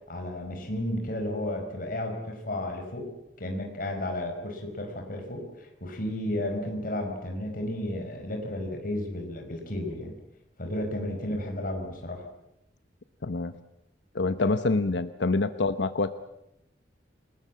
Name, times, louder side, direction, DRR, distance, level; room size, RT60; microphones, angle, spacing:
voice 1, 0.1-3.1 3.4-10.1 10.6-12.2 14.4-14.5, left 1 dB, 55° left, 3 dB, 5.0 m, -33 dB
voice 2, 13.2-13.5 14.1-16.1, left 3 dB, 90° left, 11 dB, 0.9 m, -26 dB
28.5 x 20.0 x 7.5 m, 0.84 s
head